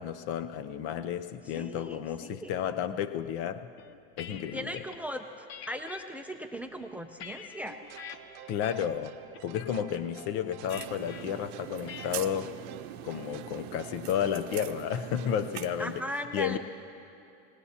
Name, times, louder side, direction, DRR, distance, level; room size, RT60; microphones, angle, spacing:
voice 1, 0.0-3.7 4.2-4.8 8.5-9.2 9.4-12.5 13.0-16.0 16.3-16.6, left 9 dB, 50° left, 13 dB, 0.7 m, -32 dB
voice 2, 1.5-2.6 4.5-5.3 5.7-7.8 15.8-16.6, equal, 5° right, 6 dB, 0.5 m, -38 dB
sound 1, 3.8-5.0 5.5-6.0 6.6-8.2 8.6-9.0 9.3-9.7 10.7-11.2 11.9-12.3, left 8 dB, 75° left, 1.0 m, -45 dB
sound 2, 7.7-15.4, right 11 dB, 55° right, 0.9 m, -50 dB
sound 3, 10.7-16.0, right 13 dB, 85° right, 0.7 m, -42 dB
25.0 x 19.0 x 2.9 m, 2.7 s
supercardioid pair, 130°, 31 cm